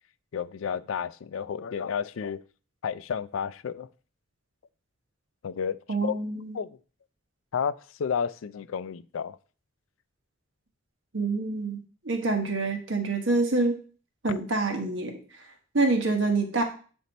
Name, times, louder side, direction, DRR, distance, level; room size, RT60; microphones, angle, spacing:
voice 1, 0.3-2.4 2.8-3.9 5.4-5.8 6.0-6.2 6.5-6.8 7.5-9.4, left 7 dB, 75° left, 16 dB, 0.4 m, -31 dB
voice 2, 5.9-6.6 11.1-13.8 14.2-15.1 15.7-16.6, right 3 dB, 65° right, 4 dB, 1.3 m, -26 dB
8.0 x 4.3 x 4.0 m, 0.40 s
head